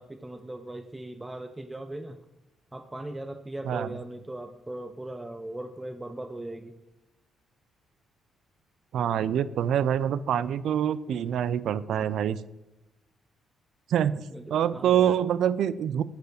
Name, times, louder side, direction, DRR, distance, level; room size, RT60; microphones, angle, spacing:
voice 1, 0.0-2.2 2.7-6.8 14.3-15.2, right 1 dB, 15° right, 7 dB, 0.6 m, -39 dB
voice 2, 3.6-4.0 8.9-12.4 13.9-14.2 14.5-16.0, right 9 dB, 75° right, 16 dB, 0.4 m, -25 dB
8.2 x 4.1 x 6.5 m, 0.98 s
cardioid pair, 90°, 0 cm